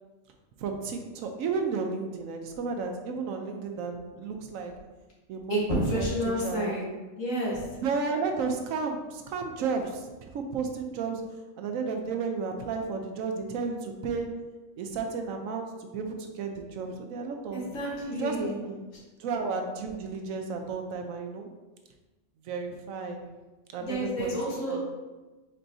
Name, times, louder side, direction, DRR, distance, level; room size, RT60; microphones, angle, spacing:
voice 1, 0.6-4.7 5.3-6.8 7.8-11.2 11.6-14.3 14.8-17.7 18.2-18.8 19.2-21.5 22.5-23.2 23.7-24.4 24.7-24.8, right 4 dB, 90° right, 4 dB, 1.0 m, -33 dB
voice 2, 5.5-6.8 7.2-7.6 17.5-18.5 23.8-24.9, equal, 75° left, -4 dB, 1.6 m, -30 dB
4.4 x 4.3 x 2.6 m, 1.2 s
omnidirectional pair, 1.4 m